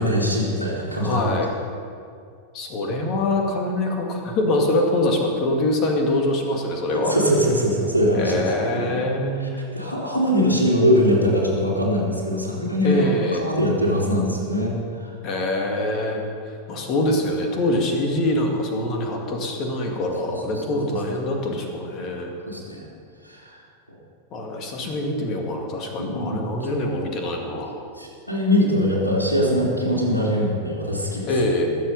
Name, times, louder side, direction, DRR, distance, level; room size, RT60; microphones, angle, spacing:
voice 1, 0.0-1.2 6.9-8.5 8.9-9.0 9.4-14.7 15.0-15.1 20.5-20.8 21.3-21.4 22.5-22.8 23.2-23.6 24.8-24.9 26.0-26.7 27.9-31.3, equal, 85° left, -4 dB, 3.2 m, -22 dB
voice 2, 1.0-1.5 2.5-7.2 8.1-9.6 12.8-13.5 15.2-16.2 16.7-22.3 24.3-27.8 31.3-31.8, left 1 dB, 35° left, 2 dB, 2.2 m, -24 dB
21.0 x 7.8 x 5.4 m, 2.3 s
figure-of-eight pair, 90°, 0 cm